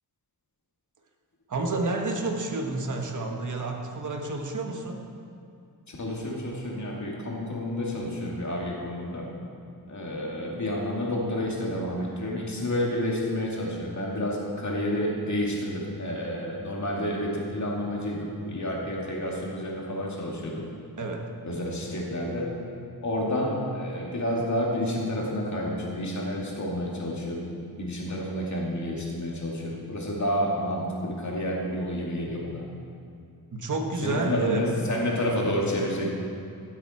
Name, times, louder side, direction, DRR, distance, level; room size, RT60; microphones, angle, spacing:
voice 1, 1.5-5.0 21.0-21.3 33.5-34.7, right 2 dB, 50° right, 2 dB, 1.5 m, -30 dB
voice 2, 5.9-9.3 9.9-20.6 21.4-22.6 23.0-32.6 34.0-36.1, left 1 dB, 45° left, -3 dB, 2.5 m, -30 dB
16.0 x 7.8 x 4.4 m, 2.5 s
wide cardioid pair, 95°, 39 cm